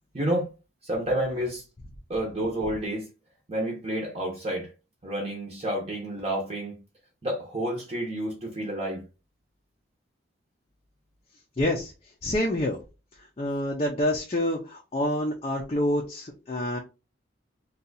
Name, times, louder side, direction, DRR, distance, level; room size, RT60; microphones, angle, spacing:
voice 1, 0.1-0.5 0.8-1.6 2.1-3.1 3.5-4.7 5.0-6.8 7.2-9.0, right 1 dB, 30° right, 0.7 m, -29 dB
voice 2, 11.6-12.8 13.2-16.8, left 1 dB, 30° left, 0.5 m, -27 dB
2.7 x 2.3 x 3.9 m
head